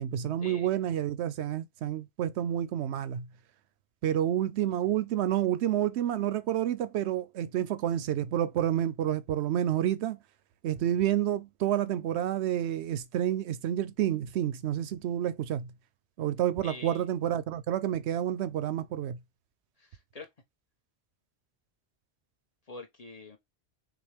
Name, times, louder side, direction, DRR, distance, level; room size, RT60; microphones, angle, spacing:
voice 1, 0.0-3.3 4.0-10.2 10.6-15.7 16.2-19.2, right 11 dB, 85° right, 0.9 m, -29 dB
voice 2, 16.6-17.1 19.8-20.3 22.7-23.4, left 2 dB, 40° left, 1.0 m, -45 dB
5.9 x 2.3 x 3.4 m
omnidirectional pair, 1.1 m